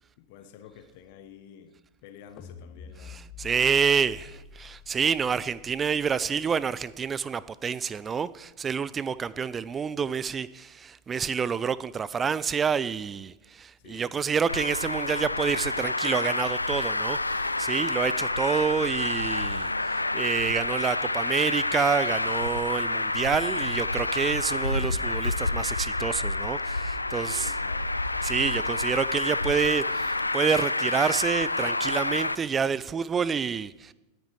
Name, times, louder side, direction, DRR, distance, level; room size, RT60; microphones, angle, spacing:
voice 1, 0.2-3.2 8.9-9.0 13.8-14.2 27.2-28.0 28.6-28.9, left 9 dB, 50° left, 1.1 m, -50 dB
sound 1, 2.4-8.7, left 7 dB, 25° left, 1.1 m, -49 dB
voice 2, 3.1-27.5 28.2-33.9, right 6 dB, 20° right, 0.4 m, -28 dB
Traffic noise roadway noise, 14.5-32.3, left 2 dB, 85° left, 0.5 m, -28 dB
18.0 x 9.7 x 4.7 m
figure-of-eight pair, 90°, 0 cm